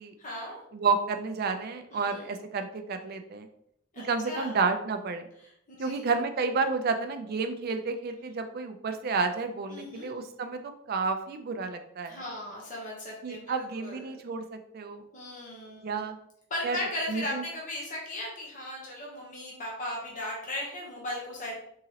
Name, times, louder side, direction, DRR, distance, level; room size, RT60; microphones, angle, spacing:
voice 1, 0.2-0.6 1.9-2.3 3.9-4.5 5.8-6.1 9.7-10.1 12.1-14.2 15.1-16.1 16.5-21.5, left 1 dB, 35° left, -3 dB, 0.8 m, -37 dB
voice 2, 0.7-3.5 4.0-5.3 5.8-12.2 13.2-15.0 15.8-16.2 16.6-16.8 17.1-17.4, right 4 dB, 45° right, 7 dB, 0.4 m, -30 dB
3.8 x 2.9 x 2.8 m, 0.73 s
head